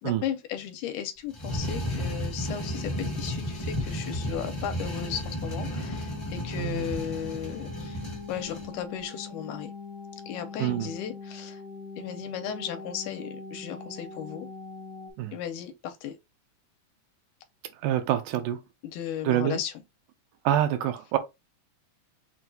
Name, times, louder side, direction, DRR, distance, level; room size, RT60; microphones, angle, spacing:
voice 1, 0.0-8.0 8.3-9.7 10.3-11.6 12.0-14.5 15.3-16.2 18.8-19.8, left 9 dB, 85° left, 2.1 m, -35 dB
sound 1, 1.3-8.7, equal, 30° left, 0.5 m, -33 dB
sound 2, 2.8-15.1, left 4 dB, 60° left, 1.0 m, -43 dB
voice 2, 6.6-6.9 10.6-10.9 15.2-15.4 17.8-18.6 19.2-19.6 20.5-21.2, right 11 dB, 90° right, 2.1 m, -26 dB
6.0 x 2.3 x 2.6 m
omnidirectional pair, 3.6 m